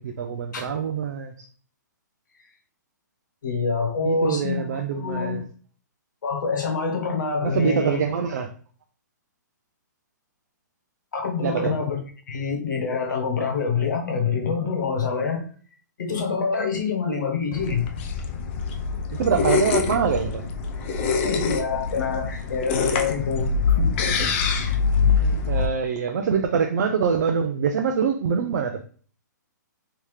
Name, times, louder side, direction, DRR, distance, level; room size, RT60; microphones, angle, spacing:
voice 1, 0.0-1.5 4.0-5.4 7.4-8.5 11.4-11.8 19.1-20.4 25.1-28.8, right 6 dB, 65° right, 0.4 m, -24 dB
voice 2, 3.4-5.4 6.2-8.0 11.1-12.0 12.3-15.5 16.0-17.8 21.2-24.3, left 5 dB, 75° left, 1.2 m, -26 dB
sound 1, 17.5-25.7, left 5 dB, 35° left, 0.5 m, -24 dB
3.5 x 2.9 x 3.1 m
hypercardioid pair, 145°, 10 cm